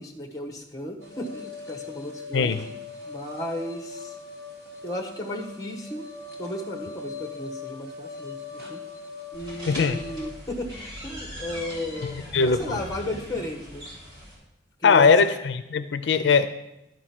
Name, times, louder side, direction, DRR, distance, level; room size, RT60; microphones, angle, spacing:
voice 1, 0.0-2.6 3.1-4.2 4.8-6.1 6.4-8.8 9.3-10.7 11.0-13.9 14.8-15.1, left 1 dB, 20° left, 5 dB, 1.2 m, -34 dB
sound 1, 1.0-10.2, left 4 dB, 60° right, 2.0 m, -40 dB
sound 2, 9.3-14.3, equal, 20° right, 3.4 m, -40 dB
voice 2, 9.7-10.0 12.3-12.8 14.8-16.5, left 5 dB, 75° left, 11 dB, 0.4 m, -20 dB
11.5 x 5.0 x 5.9 m, 0.90 s
head